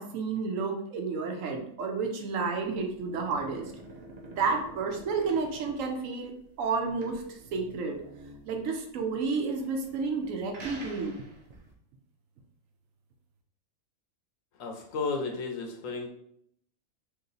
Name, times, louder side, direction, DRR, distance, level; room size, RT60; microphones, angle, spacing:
voice 1, 0.0-3.7 4.2-8.0 8.5-11.2, right 4 dB, 70° right, 4 dB, 1.0 m, -31 dB
sound 1, 2.5-11.7, right 2 dB, 45° right, 0.6 m, -48 dB
voice 2, 14.6-16.1, left 4 dB, 70° left, 2 dB, 1.1 m, -33 dB
3.0 x 2.9 x 3.8 m, 0.71 s
omnidirectional pair, 1.5 m